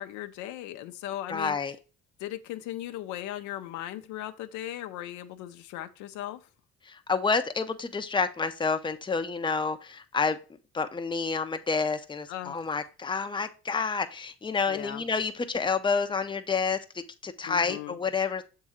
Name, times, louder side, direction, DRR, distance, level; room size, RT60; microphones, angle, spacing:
voice 1, 0.0-1.6 2.2-6.5 12.3-12.7 14.7-15.0 17.4-18.0, left 13 dB, 75° left, 0.7 m, -38 dB
voice 2, 1.3-1.8 6.8-10.4 10.7-18.4, left 5 dB, 15° left, 0.7 m, -29 dB
7.1 x 3.7 x 4.2 m
supercardioid pair, 75°, 29 cm